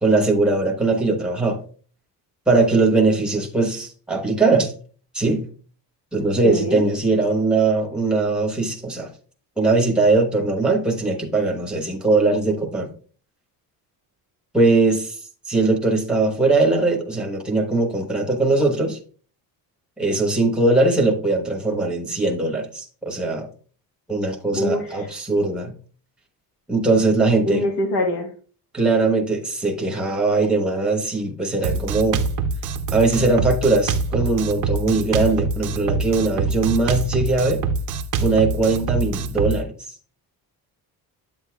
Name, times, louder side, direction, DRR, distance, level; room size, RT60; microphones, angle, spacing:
voice 1, 0.0-1.6 2.5-4.7 5.1-5.5 6.1-9.1 9.6-12.9 14.5-15.1 15.5-19.0 20.0-23.5 24.1-25.7 26.7-27.6 28.7-32.2 32.9-37.6 38.2-39.7, right 3 dB, ahead, 2 dB, 1.1 m, -20 dB
voice 2, 6.4-6.8 24.5-25.1 27.4-28.3, equal, 60° left, 3 dB, 1.4 m, -23 dB
Drum kit, 31.6-39.6, right 4 dB, 50° right, 0.6 m, -24 dB
8.8 x 8.2 x 2.3 m, 0.42 s
cardioid pair, 165°, 40 cm